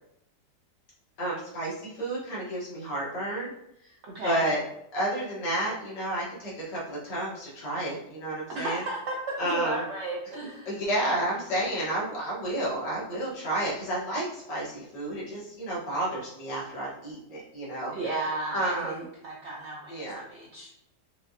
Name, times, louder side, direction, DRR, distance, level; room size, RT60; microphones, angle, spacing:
voice 1, 1.2-3.5 4.2-4.6 4.9-8.8 9.4-9.8 10.7-19.0 19.9-20.2, right 1 dB, 90° left, -6 dB, 2.1 m, -31 dB
voice 2, 4.1-4.5 8.5-10.8 17.9-20.7, right 2 dB, 75° right, -2 dB, 0.6 m, -34 dB
5.6 x 2.7 x 2.4 m, 0.80 s
omnidirectional pair, 1.8 m